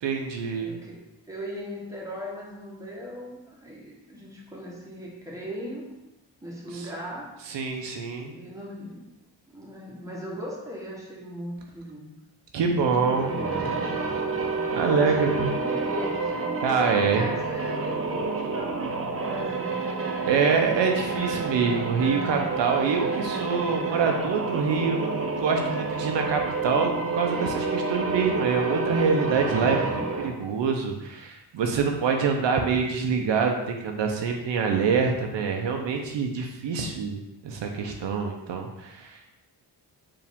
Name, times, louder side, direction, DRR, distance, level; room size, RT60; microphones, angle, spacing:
voice 1, 0.0-0.7 6.7-6.9 7.5-8.3 12.5-13.3 14.7-15.5 16.6-17.3 20.3-39.4, right 5 dB, 80° right, 3 dB, 0.7 m, -25 dB
voice 2, 0.5-6.0 6.4-7.4 7.7-7.9 8.2-9.1 9.5-12.1 12.6-13.6 14.7-16.3 16.7-19.9 20.3-20.4, equal, 5° right, -3 dB, 1.1 m, -38 dB
sound 1, 13.0-30.5, right 4 dB, 30° right, 0.6 m, -29 dB
4.7 x 2.7 x 3.5 m, 0.91 s
cardioid pair, 85°, 43 cm